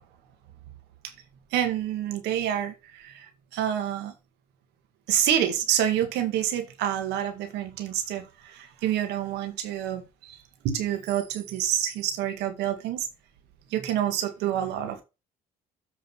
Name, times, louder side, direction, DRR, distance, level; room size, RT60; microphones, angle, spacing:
voice 1, 1.5-4.1 5.1-10.4 10.6-13.1 13.7-15.0, right 10 dB, 85° right, 1.9 m, -28 dB
7.6 x 5.2 x 5.8 m
cardioid pair, 110°, 17 cm